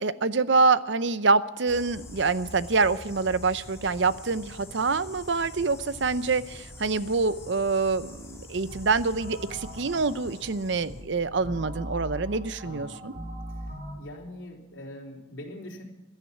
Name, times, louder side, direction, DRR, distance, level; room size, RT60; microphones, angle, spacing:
voice 1, 0.0-13.1, right 4 dB, 65° right, 15 dB, 0.7 m, -26 dB
sound 1, 1.7-11.0, left 1 dB, 15° left, 2.4 m, -45 dB
sound 2, 8.7-14.0, equal, 40° right, 2.2 m, -40 dB
voice 2, 12.6-13.2 13.9-15.8, left 1 dB, 85° left, -1 dB, 3.9 m, -42 dB
16.0 x 11.5 x 7.1 m, 1.1 s
head